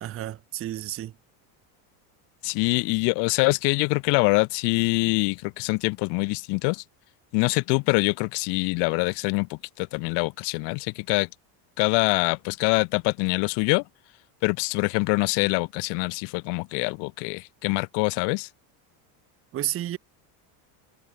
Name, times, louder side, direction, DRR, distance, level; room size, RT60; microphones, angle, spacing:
voice 1, 0.0-1.1 19.5-20.0, right 13 dB, 30° right, 0.6 m, -31 dB
voice 2, 2.4-6.8 7.3-11.3 11.8-13.8 14.4-18.5, left 32 dB, 60° left, 0.5 m, -24 dB
supercardioid pair, 125°, 49 cm